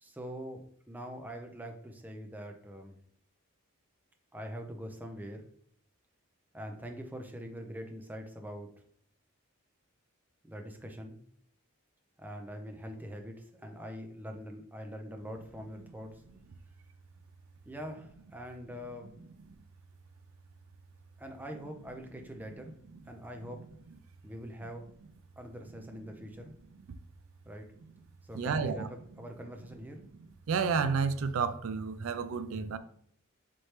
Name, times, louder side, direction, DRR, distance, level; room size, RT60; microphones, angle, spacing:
voice 1, 0.0-3.0 4.3-5.4 6.5-8.7 10.4-11.2 12.2-16.2 17.7-19.3 21.2-22.8 23.1-23.7 24.2-24.8 25.4-26.5 27.4-27.7 28.2-28.8 29.2-30.0, equal, 10° right, 0.5 m, -43 dB
voice 2, 28.3-28.9 30.5-32.8, right 5 dB, 70° right, 0.4 m, -30 dB
4.3 x 3.1 x 3.1 m
head